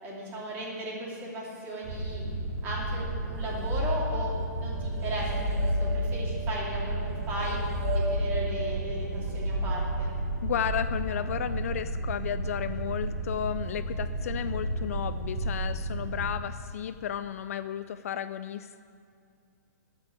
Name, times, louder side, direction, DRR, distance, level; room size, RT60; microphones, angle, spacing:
voice 1, 0.0-2.3 2.6-4.3 4.6-7.6 7.9-10.1, right 1 dB, 20° right, -4 dB, 2.7 m, -36 dB
sound 1, 1.8-16.3, right 2 dB, 40° right, 3.0 m, -33 dB
sound 2, 3.3-4.5 4.8-11.3, left 1 dB, 65° right, 1.9 m, -33 dB
voice 2, 10.4-18.8, left 9 dB, 55° left, 12 dB, 0.4 m, -33 dB
14.0 x 5.3 x 8.7 m, 2.3 s
hypercardioid pair, 160°, 10 cm